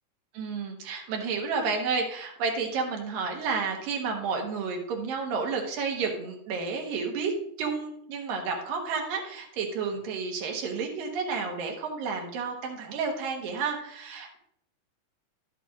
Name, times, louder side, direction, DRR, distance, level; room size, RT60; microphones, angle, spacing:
voice 1, 0.3-14.4, right 5 dB, 80° right, 1 dB, 3.0 m, -31 dB
11.5 x 8.1 x 2.4 m, 0.66 s
omnidirectional pair, 3.9 m